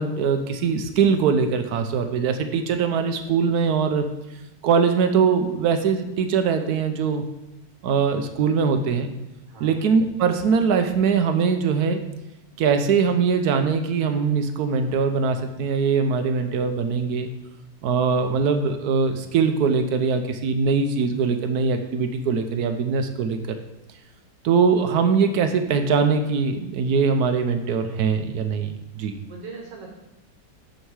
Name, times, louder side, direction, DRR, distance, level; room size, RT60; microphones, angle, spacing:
voice 1, 0.0-4.1 4.6-7.2 7.8-9.1 9.6-12.0 12.6-17.3 17.8-23.6 24.4-29.1, right 5 dB, 70° right, 7 dB, 1.1 m, -22 dB
voice 2, 9.5-9.8 29.3-29.9, right 4 dB, 90° right, 0 dB, 1.8 m, -40 dB
6.4 x 6.4 x 4.7 m, 0.95 s
omnidirectional pair, 1.8 m